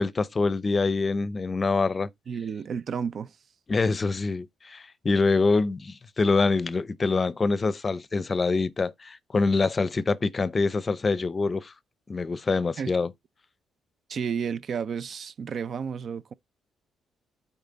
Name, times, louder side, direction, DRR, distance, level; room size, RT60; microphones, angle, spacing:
voice 1, 0.0-2.1 3.7-11.7 12.1-13.1, left 3 dB, 30° left, 0.6 m, -25 dB
voice 2, 2.3-3.4 12.8-12.9 14.1-16.3, right 6 dB, 55° right, 0.5 m, -31 dB
9.3 x 4.2 x 4.0 m
cardioid pair, 90°, 0 cm